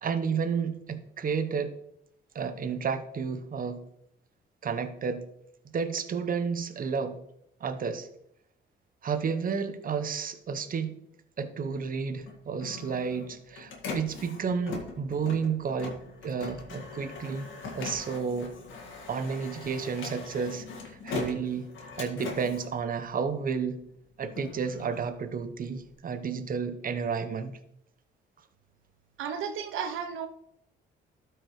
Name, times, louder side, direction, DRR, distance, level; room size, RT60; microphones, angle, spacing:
voice 1, 0.0-1.8 2.3-3.8 4.6-5.2 5.7-7.2 7.6-8.1 9.0-10.9 11.4-16.0 16.2-17.5 17.7-18.5 19.1-21.7 22.0-23.8 24.2-27.5, right 6 dB, 45° right, 9 dB, 0.8 m, -31 dB
Printer, 12.2-23.6 24.1-25.9, left 4 dB, 75° left, 1.8 m, -41 dB
voice 2, 29.2-30.3, right 7 dB, 85° right, 7 dB, 0.6 m, -33 dB
12.5 x 4.8 x 3.1 m, 0.75 s
cardioid pair, 90°, 20 cm